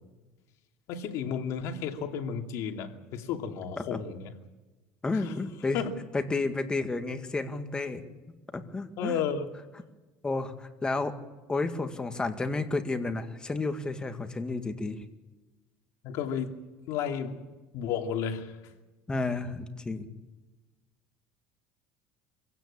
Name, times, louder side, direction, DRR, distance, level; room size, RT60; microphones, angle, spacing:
voice 1, 0.9-4.3 5.1-5.3 5.7-5.9 9.0-9.5 16.0-16.6 16.9-17.4 17.7-18.7, left 7 dB, 60° left, 4 dB, 2.7 m, -33 dB
voice 2, 5.0-5.8 6.1-8.0 8.5-9.2 10.2-11.2 11.5-15.0 19.1-20.1, left 3 dB, 15° left, 7 dB, 2.0 m, -31 dB
25.0 x 16.5 x 8.6 m, 1.2 s
cardioid pair, 135°, 6 cm